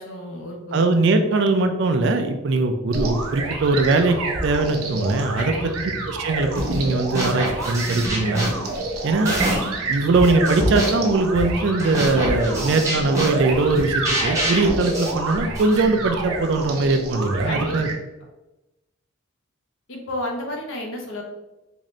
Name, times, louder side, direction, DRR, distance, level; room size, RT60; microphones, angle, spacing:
voice 1, 0.0-0.9 5.3-5.9 17.4-17.7 19.9-21.2, left 1 dB, 65° left, 0 dB, 0.8 m, -32 dB
voice 2, 0.7-4.2 4.4-5.5 6.1-8.5 9.0-9.4 9.9-17.9, right 3 dB, 55° right, 6 dB, 0.4 m, -21 dB
sound 1, 2.9-17.9, right 3 dB, 90° right, 0.7 m, -29 dB
sound 2, 6.5-6.9 7.1-9.8 10.1-15.8, right 1 dB, 15° right, 0.7 m, -26 dB
3.8 x 2.6 x 3.1 m, 1.0 s
head